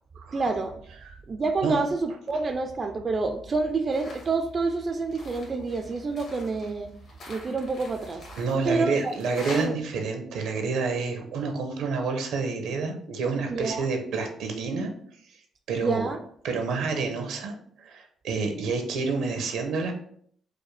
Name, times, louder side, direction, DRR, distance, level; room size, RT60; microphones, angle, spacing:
voice 1, 0.3-0.7 1.3-6.9 7.3-8.3 8.7-9.1 9.5-9.7 13.5-13.9 15.8-16.2, right 3 dB, 40° right, 6 dB, 0.4 m, -28 dB
sound 1, 3.9-4.3 4.7-9.7, left 1 dB, 65° left, 1.6 m, -44 dB
voice 2, 8.4-14.9 15.7-16.1 16.4-19.9, right 4 dB, 85° right, 4 dB, 0.8 m, -29 dB
4.9 x 2.1 x 3.2 m, 0.62 s
cardioid pair, 90°, 0 cm